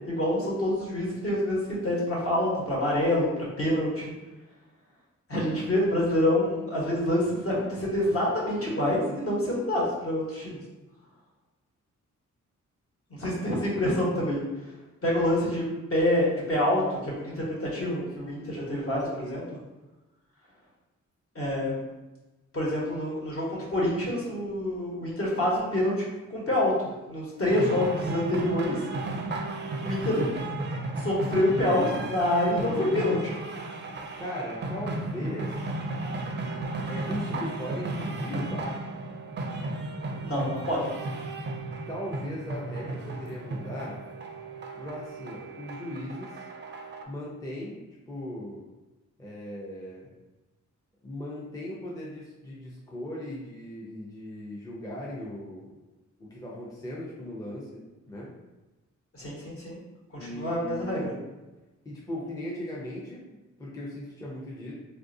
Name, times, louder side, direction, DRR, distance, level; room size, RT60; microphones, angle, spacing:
voice 1, 0.1-3.3 3.6-4.1 5.3-10.6 13.1-14.4 15.0-15.6 15.9-19.4 21.3-21.8 22.5-26.0 26.3-28.8 29.8-30.2 31.0-33.3 40.2-40.9 59.1-59.8 60.1-61.1, left 1 dB, 50° left, -5 dB, 1.2 m, -27 dB
sound 1, 27.5-47.0, right 2 dB, 40° right, 0.4 m, -34 dB
voice 2, 34.2-35.7 36.9-38.8 41.9-44.0 44.7-46.4 47.1-48.6 49.2-50.1 51.0-55.7 56.2-58.3 60.1-61.1 61.8-64.7, left 1 dB, 10° left, -5 dB, 0.5 m, -38 dB
3.3 x 2.5 x 2.6 m, 1.1 s
wide cardioid pair, 100°, 30 cm